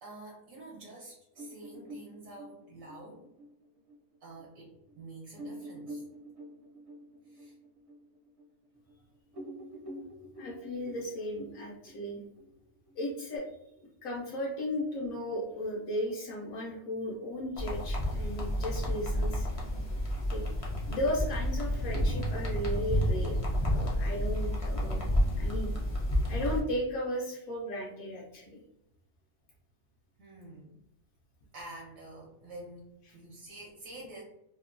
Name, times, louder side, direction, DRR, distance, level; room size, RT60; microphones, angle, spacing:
voice 1, 0.0-3.4 4.2-6.0 7.3-7.5 30.2-30.8 31.5-34.2, right 2 dB, 75° right, -3 dB, 1.0 m, -48 dB
sound 1, 1.3-4.4 4.9-5.0 5.3-9.0 9.2-13.4, right 1 dB, 45° right, 0.4 m, -47 dB
voice 2, 10.3-12.2 13.0-13.4 14.0-19.5 20.3-20.4 20.9-25.0 25.4-25.7 26.3-28.6, left 1 dB, 85° left, -4 dB, 1.0 m, -35 dB
sound 2, 17.6-26.6, equal, 45° left, 0.4 m, -30 dB
2.9 x 2.1 x 2.4 m, 0.83 s
omnidirectional pair, 1.4 m